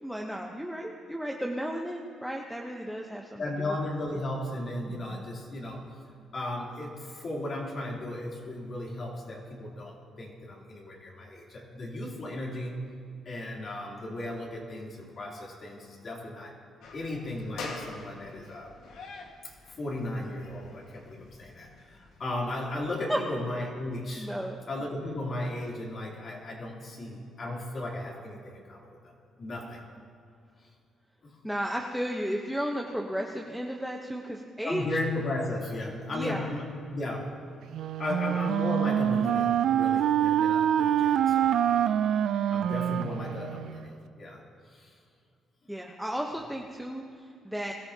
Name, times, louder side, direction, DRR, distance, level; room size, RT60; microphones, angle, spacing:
voice 1, 0.0-3.8 4.9-5.3 23.1-23.2 24.2-24.6 31.4-34.9 36.1-36.5 45.7-47.7, equal, ahead, 0 dB, 1.0 m, -34 dB
voice 2, 3.4-5.9 6.3-12.8 13.2-16.6 16.9-18.7 19.4-24.3 24.7-29.1 29.4-29.8 31.2-31.4 34.6-36.6 36.9-37.4 38.0-42.0 42.5-44.4 44.7-44.9, left 1 dB, 45° left, -2 dB, 3.2 m, -35 dB
sound 1, 16.8-22.9, left 3 dB, 80° left, 1.7 m, -46 dB
Wind instrument woodwind instrument, 37.7-43.8, right 10 dB, 75° right, 0.4 m, -25 dB
22.0 x 14.0 x 2.9 m, 2.3 s
cardioid pair, 90°, 0 cm